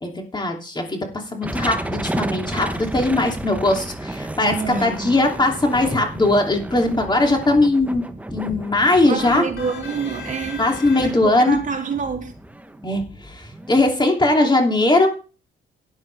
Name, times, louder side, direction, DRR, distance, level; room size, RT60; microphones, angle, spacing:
voice 1, 0.0-4.5 4.8-8.0 8.3-9.5 10.6-11.6 12.8-15.1, left 2 dB, 20° left, 2.8 m, -19 dB
sound 1, 1.4-13.8, right 1 dB, 5° right, 1.0 m, -32 dB
voice 2, 4.4-5.2 9.1-10.6 11.0-12.3, right 5 dB, 40° right, 2.7 m, -27 dB
sound 2, 9.2-11.6, left 5 dB, 80° left, 4.5 m, -37 dB
12.5 x 9.5 x 3.4 m
cardioid pair, 90°, 20 cm